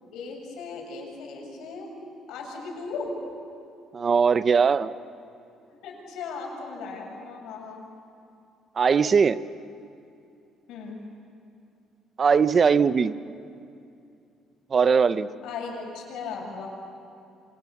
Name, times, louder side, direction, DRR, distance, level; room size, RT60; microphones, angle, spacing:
voice 1, 0.1-1.9 2.3-3.1 5.8-7.8 10.7-11.0 15.4-16.7, left 4 dB, 75° left, 0 dB, 7.4 m, -37 dB
voice 2, 3.9-4.9 8.8-9.4 12.2-13.1 14.7-15.3, right 6 dB, 30° right, 14 dB, 0.6 m, -20 dB
30.0 x 26.5 x 7.2 m, 2.6 s
cardioid pair, 155°, 0 cm